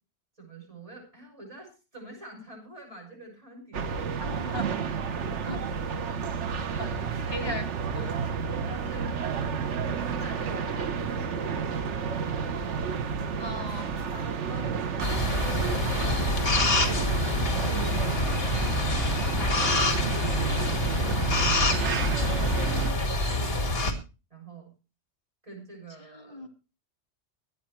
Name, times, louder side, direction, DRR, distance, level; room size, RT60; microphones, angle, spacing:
voice 1, 0.4-5.8 6.7-7.6 7.9-9.2 9.8-12.5 13.4-15.6 16.4-23.4 24.3-24.7 25.4-26.5, right 2 dB, 30° right, 6.3 m, -46 dB
sound 1, 3.7-22.9, right 6 dB, 80° right, 1.2 m, -31 dB
voice 2, 4.2-4.8 5.4-5.6 6.5-7.7 7.9-8.1 13.4-13.9 26.0-26.5, left 1 dB, 20° left, 2.0 m, -38 dB
sound 2, 15.0-23.9, left 2 dB, 55° left, 2.3 m, -26 dB
22.5 x 9.3 x 3.1 m
omnidirectional pair, 1.2 m